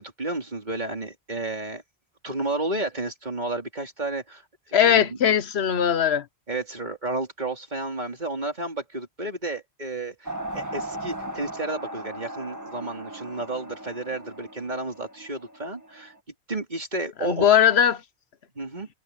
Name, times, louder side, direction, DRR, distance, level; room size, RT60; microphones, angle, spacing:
voice 1, 0.0-1.8 2.2-4.4 4.8-5.2 6.5-16.1 16.5-17.4 18.6-18.9, right 2 dB, 45° right, 3.8 m, -32 dB
voice 2, 4.7-6.2 17.2-18.0, left 9 dB, 75° left, 1.1 m, -19 dB
sound 1, 10.3-16.2, right 1 dB, 15° right, 1.9 m, -37 dB
omnidirectional pair, 1.1 m